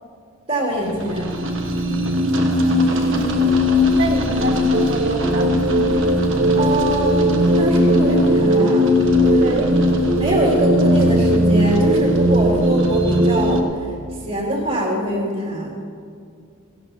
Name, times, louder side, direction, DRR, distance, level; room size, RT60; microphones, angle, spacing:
voice 1, 0.5-1.3 6.6-8.9 9.2-9.6 10.2-13.7 14.3-15.9, right 1 dB, 45° right, -4 dB, 2.5 m, -23 dB
sound 1, 0.8-13.6, equal, 85° right, 1.4 m, -18 dB
voice 2, 2.8-3.4 4.0-5.5 9.4-9.7, right 2 dB, 60° right, -1 dB, 2.2 m, -28 dB
18.5 x 16.0 x 2.8 m, 2.3 s
head